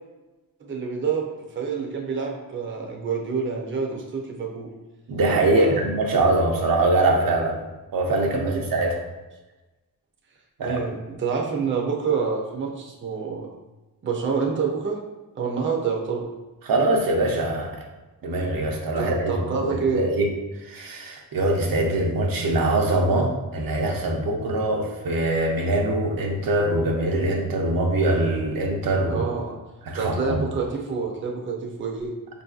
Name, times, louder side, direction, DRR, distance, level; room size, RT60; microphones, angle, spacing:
voice 1, 0.6-1.3 1.6-4.7 5.5-5.9 8.3-8.6 10.6-13.5 14.0-15.0 15.4-16.3 19.0-20.1 29.1-29.6 30.0-32.1, right 5 dB, 35° right, 0 dB, 0.5 m, -27 dB
voice 2, 5.1-7.6 7.9-9.0 10.6-10.8 16.7-17.7 18.2-19.4 19.7-20.3 20.7-29.3 29.9-30.4, right 2 dB, 75° right, 0 dB, 0.6 m, -23 dB
5.0 x 2.6 x 2.3 m, 1.1 s
wide cardioid pair, 135°, 35 cm